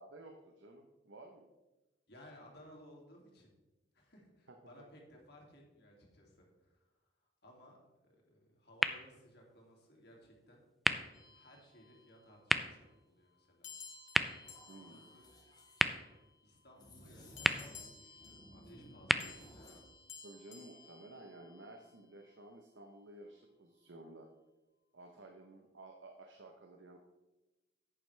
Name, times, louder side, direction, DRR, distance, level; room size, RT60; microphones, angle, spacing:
voice 1, 0.0-1.5 14.7-15.2 20.2-24.3 24.9-27.0, right 2 dB, 75° right, 3 dB, 1.0 m, -54 dB
voice 2, 2.1-3.5 3.9-10.6 11.3-13.7 14.5-15.3 16.4-19.7, equal, 60° left, -1 dB, 2.5 m, -60 dB
sound 1, 8.7-20.7, equal, ahead, 0.3 m, -39 dB
sound 2, 11.1-12.4 13.6-16.3 17.4-21.9, left 5 dB, 85° left, 1.6 m, -56 dB
sound 3, 14.4-15.9 16.7-17.9 18.2-19.9, left 1 dB, 20° left, 1.8 m, -57 dB
11.0 x 8.6 x 3.4 m, 1.1 s
head